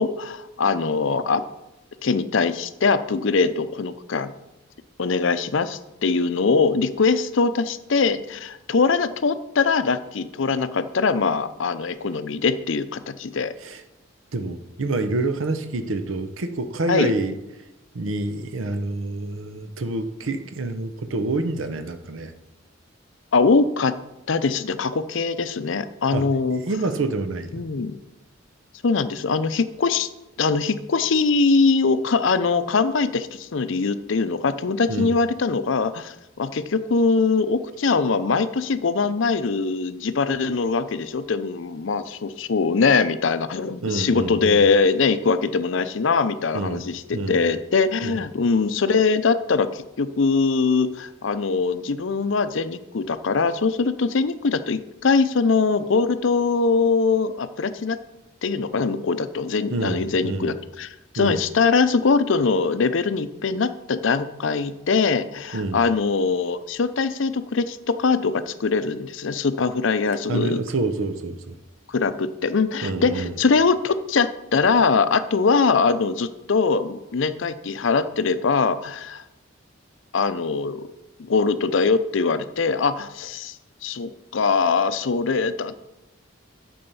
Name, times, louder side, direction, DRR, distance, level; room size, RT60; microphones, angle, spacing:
voice 1, 0.0-1.4 2.0-4.3 5.0-13.5 16.9-17.1 23.3-24.0 24.3-26.6 27.5-28.0 28.8-30.1 30.4-58.0 58.4-70.6 71.9-79.2 80.1-80.9 81.2-83.5 83.8-85.8, left 4 dB, 70° left, 12 dB, 0.6 m, -22 dB
voice 2, 14.3-17.3 17.9-22.3 26.1-27.6 34.9-35.1 43.8-44.6 46.5-47.4 48.0-48.2 59.7-60.5 61.2-61.4 65.5-65.8 70.3-71.6 72.8-73.4, right 2 dB, 80° right, 9 dB, 0.7 m, -27 dB
8.8 x 6.9 x 5.4 m, 0.97 s
head